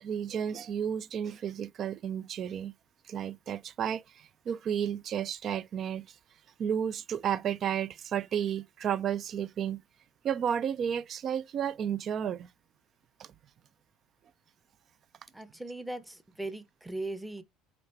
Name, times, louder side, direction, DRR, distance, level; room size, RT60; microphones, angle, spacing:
voice 1, 0.0-2.7 3.1-6.1 6.6-9.8 10.2-12.5 13.2-13.3, right 8 dB, 45° right, 0.3 m, -32 dB
voice 2, 15.3-17.4, right 2 dB, 5° right, 0.8 m, -39 dB
3.9 x 3.1 x 4.2 m
figure-of-eight pair, 65°, 0 cm